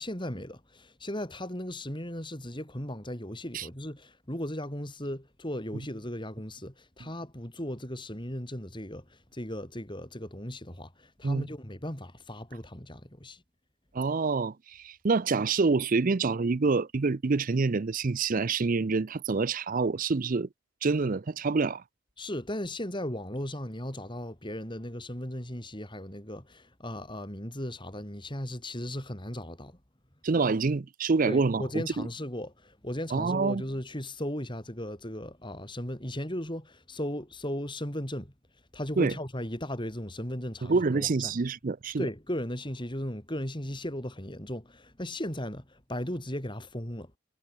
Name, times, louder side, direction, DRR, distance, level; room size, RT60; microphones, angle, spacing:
voice 1, 0.0-13.4 22.2-29.7 31.3-38.3 38.7-41.3 42.0-47.1, left 1 dB, 20° left, 4.3 m, -36 dB
voice 2, 13.9-20.5 20.8-21.8 30.2-32.1 33.1-33.6 39.0-39.1 40.6-42.1, right 4 dB, 35° right, 0.5 m, -27 dB
head